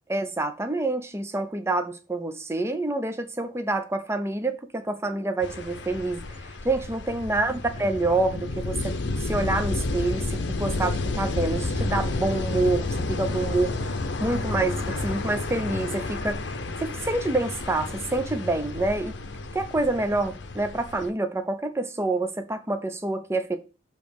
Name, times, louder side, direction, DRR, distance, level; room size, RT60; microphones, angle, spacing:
voice 1, 0.1-19.1 19.5-23.6, right 2 dB, 15° right, 0.6 m, -27 dB
sound 1, 5.4-21.1, left 2 dB, 65° left, 0.7 m, -31 dB
6.8 x 3.1 x 5.2 m
head